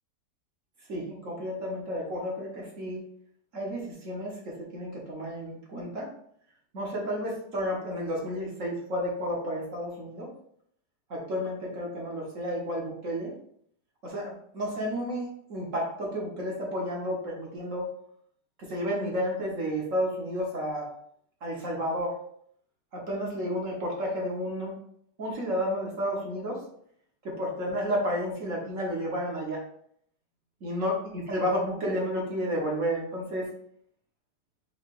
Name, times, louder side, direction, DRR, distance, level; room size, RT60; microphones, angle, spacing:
voice 1, 0.9-3.0 3.5-6.1 6.7-10.3 11.1-13.3 14.0-17.9 18.6-20.9 21.4-22.2 22.9-24.7 25.2-26.6 27.2-29.6 30.6-33.5, equal, 50° right, -3 dB, 1.3 m, -31 dB
4.7 x 2.3 x 4.6 m, 0.66 s
omnidirectional pair, 1.8 m